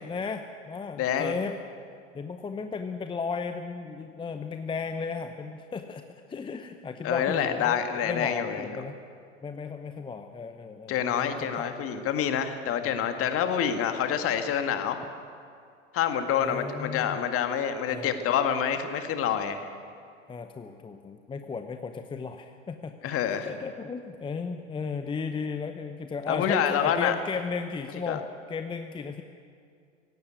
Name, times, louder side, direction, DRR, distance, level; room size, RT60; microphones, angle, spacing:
voice 1, 0.0-1.6 2.1-6.0 6.3-9.0 9.4-11.7 12.8-13.3 16.4-17.2 17.9-18.3 20.3-22.9 23.2-29.2, left 5 dB, 15° left, 7 dB, 0.8 m, -35 dB
voice 2, 1.0-1.3 7.0-8.7 10.9-15.0 15.9-19.7 23.0-23.5 26.3-27.1 28.1-28.2, left 8 dB, 35° left, 8 dB, 1.9 m, -27 dB
17.5 x 15.5 x 9.5 m, 2.3 s
figure-of-eight pair, 85°, 38 cm